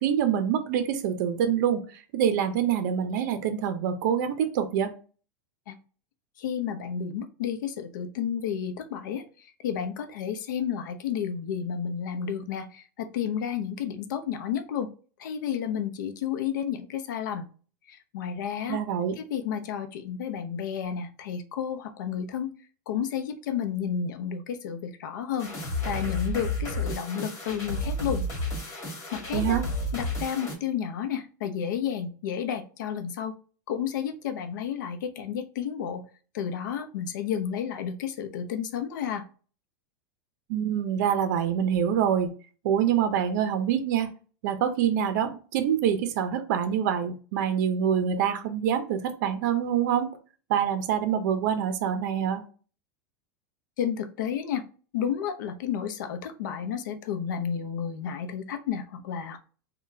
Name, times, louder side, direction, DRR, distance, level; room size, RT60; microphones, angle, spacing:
voice 1, 0.0-1.8 2.1-4.9 18.7-19.1 29.3-29.6 40.5-42.3 42.6-44.1 44.4-50.1 50.5-52.4, right 9 dB, 65° right, 9 dB, 0.6 m, -25 dB
voice 2, 6.4-9.2 9.6-14.9 15.2-17.5 17.9-18.8 19.2-22.5 22.9-25.5 25.8-28.3 28.6-28.8 29.1-29.6 29.9-33.3 33.7-36.0 36.3-39.2 53.8-54.6 54.9-59.4, left 8 dB, 80° left, 8 dB, 0.6 m, -31 dB
sound 1, 25.4-30.5, left 1 dB, 30° left, 1.3 m, -31 dB
3.7 x 2.2 x 2.6 m, 0.38 s
supercardioid pair, 135°, 10 cm